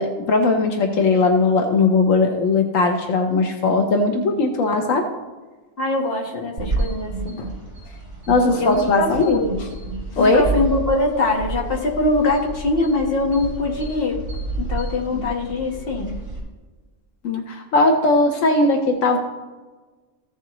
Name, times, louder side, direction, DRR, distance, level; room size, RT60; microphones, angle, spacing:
voice 1, 0.0-5.1 7.4-7.5 8.3-9.4 10.2-10.4 15.1-15.2 17.2-19.2, left 3 dB, 80° left, 4 dB, 1.2 m, -18 dB
voice 2, 5.8-7.4 8.6-9.5 10.2-14.2 14.6-16.1, left 2 dB, 50° left, -1 dB, 1.6 m, -22 dB
sound 1, 6.6-16.4, right 3 dB, 55° right, 3.5 m, -30 dB
15.0 x 7.0 x 3.0 m, 1.3 s
omnidirectional pair, 1.3 m